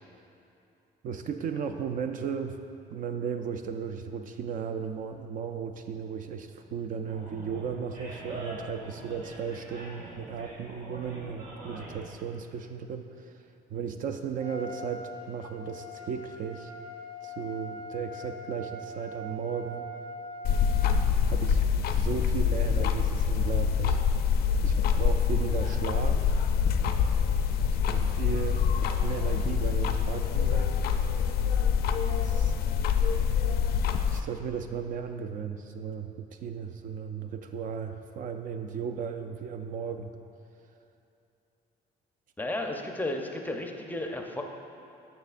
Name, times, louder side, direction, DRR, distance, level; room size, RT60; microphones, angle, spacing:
voice 1, 1.0-2.6 2.9-13.3 13.7-16.7 17.2-19.9 21.3-24.0 24.6-26.4 27.7-30.7 32.1-32.6 34.1-40.1, right 6 dB, 55° right, 7 dB, 0.4 m, -35 dB
Animal, 7.0-12.1, right 1 dB, 85° right, 1.5 m, -44 dB
Trumpet, 14.4-20.9, equal, 15° right, 1.0 m, -42 dB
sound 1, 20.4-34.2, left 7 dB, 65° left, 0.4 m, -25 dB
voice 2, 42.4-44.4, left 1 dB, 10° left, 3 dB, 0.5 m, -33 dB
9.2 x 6.8 x 2.5 m, 2.7 s
cardioid pair, 110°, 17 cm